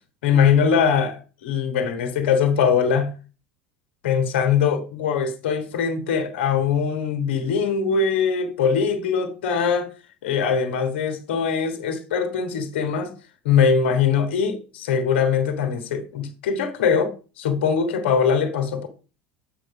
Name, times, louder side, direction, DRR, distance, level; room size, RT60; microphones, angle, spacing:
voice 1, 0.2-3.1 4.0-9.9 10.2-13.1 13.4-17.1 17.4-18.9, left 6 dB, 65° left, 1.3 m, -22 dB
8.0 x 4.4 x 4.8 m
figure-of-eight pair, 70°, 6 cm